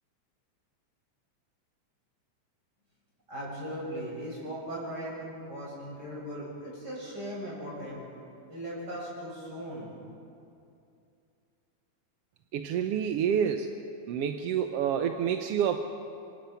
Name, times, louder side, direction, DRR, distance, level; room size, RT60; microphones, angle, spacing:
voice 1, 3.3-8.0 8.5-9.9, equal, 30° right, -5 dB, 8.5 m, -38 dB
voice 2, 12.5-13.7 14.1-15.8, right 8 dB, 70° right, 6 dB, 1.6 m, -28 dB
27.0 x 25.0 x 5.7 m, 2.6 s
omnidirectional pair, 3.4 m